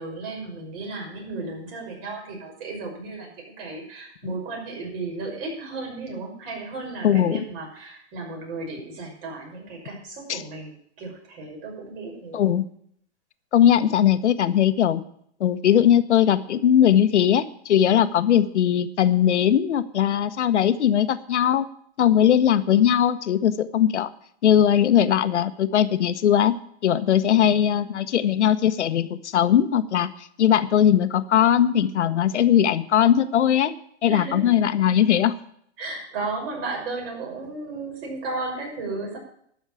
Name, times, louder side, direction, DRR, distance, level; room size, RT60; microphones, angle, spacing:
voice 1, 0.0-12.4 27.2-27.4 27.7-27.9 34.1-34.5 35.8-39.2, right 3 dB, 55° right, 0 dB, 6.0 m, -34 dB
voice 2, 7.0-7.4 10.3-10.4 12.3-12.6 13.5-15.0 15.4-21.7 22.0-24.1 24.4-26.5 26.8-33.7 34.0-35.3, left 10 dB, 90° left, 12 dB, 1.0 m, -19 dB
12.0 x 6.3 x 9.0 m, 0.67 s
hypercardioid pair, 130°, 34 cm